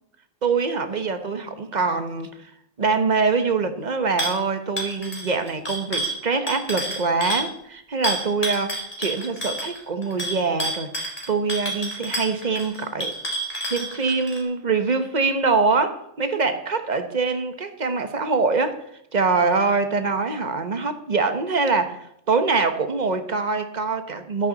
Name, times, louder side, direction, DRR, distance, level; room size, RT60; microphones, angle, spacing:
voice 1, 0.4-2.5 2.8-13.1 13.7-18.8 19.1-24.5, right 4 dB, 35° right, 8 dB, 1.2 m, -24 dB
sound 1, 4.2-4.4 4.8-7.5 8.0-14.4, right 1 dB, 30° left, 3.2 m, -29 dB
14.0 x 12.0 x 4.1 m, 0.74 s
omnidirectional pair, 1.3 m